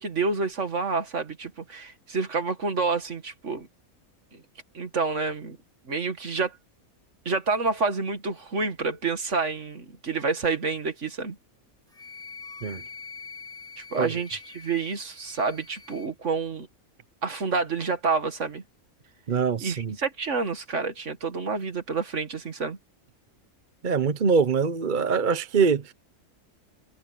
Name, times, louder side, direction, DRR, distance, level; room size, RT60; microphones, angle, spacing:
voice 1, 0.0-3.7 4.3-4.4 4.7-5.6 5.9-6.6 7.3-11.4 13.8-16.7 17.2-18.6 19.6-22.8, right 4 dB, 55° right, 2.2 m, -28 dB
Wind instrument woodwind instrument, 11.9-16.1, left 5 dB, 5° left, 1.0 m, -44 dB
voice 2, 19.3-20.0 23.8-25.9, right 5 dB, 40° right, 0.9 m, -23 dB
omnidirectional pair, 1.5 m